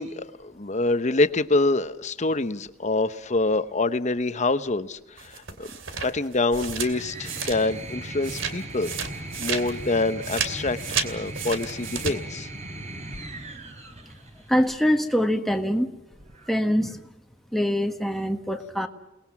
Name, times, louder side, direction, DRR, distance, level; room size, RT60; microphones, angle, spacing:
voice 1, 0.0-5.7 6.0-8.9 9.4-12.5, left 2 dB, 35° left, 11 dB, 1.0 m, -26 dB
sound 1, 5.2-7.9 8.2-12.1, right 6 dB, 80° right, 2.7 m, -32 dB
sound 2, 6.5-14.9 16.1-16.8, right 2 dB, 35° right, 3.5 m, -38 dB
voice 2, 14.5-15.9 16.5-17.0 17.5-18.9, equal, ahead, 5 dB, 1.5 m, -24 dB
29.5 x 20.5 x 6.0 m, 0.92 s
head